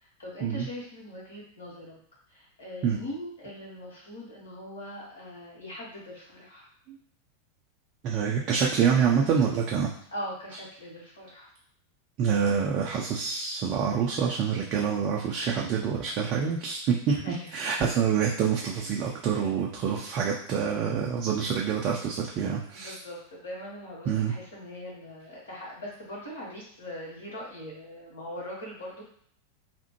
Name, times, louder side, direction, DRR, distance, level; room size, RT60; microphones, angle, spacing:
voice 1, 0.0-2.0 2.3-6.7 10.1-11.5 17.1-17.5 19.0-19.2 22.7-29.0, left 1 dB, 70° left, -4 dB, 1.2 m, -41 dB
voice 2, 8.0-9.9 12.2-22.9 24.1-24.3, right 7 dB, 35° right, -2 dB, 0.5 m, -26 dB
3.4 x 2.1 x 3.0 m, 0.64 s
figure-of-eight pair, 90°, 0 cm